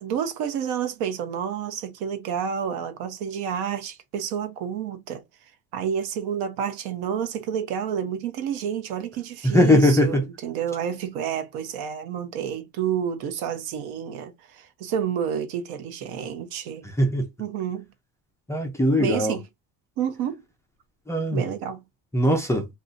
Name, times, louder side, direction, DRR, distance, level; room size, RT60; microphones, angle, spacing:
voice 1, 0.0-5.2 5.7-16.8 17.4-17.8 19.0-19.5 20.0-20.4 21.3-21.8, right 8 dB, 80° right, 0.9 m, -29 dB
voice 2, 9.4-10.3 17.0-17.3 18.5-19.4 21.1-21.5 22.1-22.7, left 1 dB, 10° left, 0.4 m, -20 dB
2.5 x 2.4 x 3.7 m
cardioid pair, 160°, 38 cm